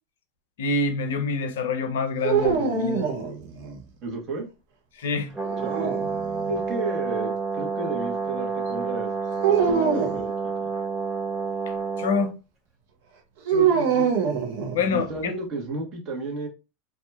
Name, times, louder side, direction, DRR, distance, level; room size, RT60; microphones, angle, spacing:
voice 1, 0.6-3.1 5.0-5.3 12.0-12.3 13.5-14.1 14.7-15.3, left 4 dB, 70° left, 0.6 m, -26 dB
sound 1, 2.2-3.8 5.4-6.6 9.4-10.2 13.5-15.1, right 7 dB, 65° right, 0.7 m, -24 dB
voice 2, 4.0-4.5 5.6-5.9 6.5-10.3 10.6-10.7 14.9-16.5, right 3 dB, 40° right, 1.1 m, -33 dB
Brass instrument, 5.3-12.3, right 5 dB, 25° right, 1.5 m, -29 dB
2.7 x 2.3 x 2.3 m
hypercardioid pair, 90°, 0 cm